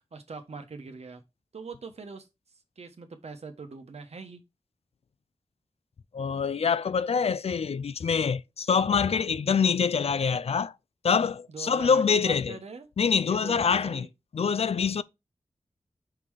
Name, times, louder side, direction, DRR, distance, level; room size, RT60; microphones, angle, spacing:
voice 1, 0.1-1.2 1.5-2.3 2.8-4.4 11.5-12.9 13.3-14.1, right 4 dB, 75° right, 1.1 m, -42 dB
voice 2, 6.1-10.7 11.0-12.6 13.0-14.1 14.3-15.0, left 6 dB, 70° left, 0.4 m, -25 dB
5.7 x 3.8 x 4.8 m
wide cardioid pair, 90°, 11 cm